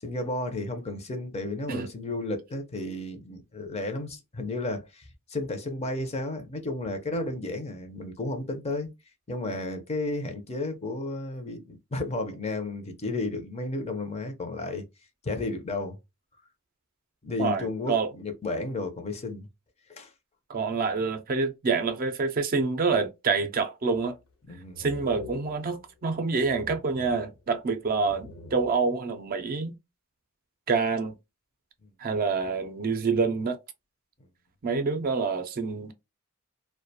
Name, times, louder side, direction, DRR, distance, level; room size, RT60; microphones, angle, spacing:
voice 1, 0.0-8.9 9.3-14.8 15.2-16.0 17.2-19.5 19.9-20.1 24.5-24.8 31.8-31.9, left 2 dB, 30° left, 0.5 m, -33 dB
voice 2, 17.4-18.1 20.5-24.2 24.8-29.8 30.7-31.1 32.0-33.6 34.6-35.9, right 4 dB, 45° right, 0.4 m, -27 dB
sound 1, 23.9-24.3 24.7-26.1 26.4-27.7 28.0-29.0, left 4 dB, 85° left, 0.6 m, -46 dB
2.4 x 2.1 x 2.7 m
head